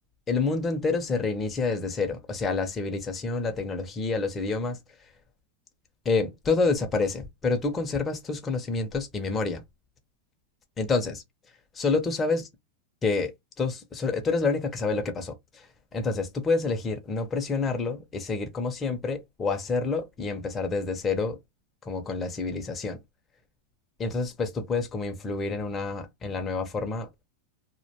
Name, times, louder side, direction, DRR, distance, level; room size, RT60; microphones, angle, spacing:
voice 1, 0.3-4.8 6.1-9.6 10.8-11.2 11.8-12.4 13.0-13.3 13.6-15.3 15.9-21.4 21.8-23.0 24.0-27.1, left 4 dB, 20° left, 0.5 m, -28 dB
2.4 x 2.1 x 2.7 m
supercardioid pair, 130°, 0 cm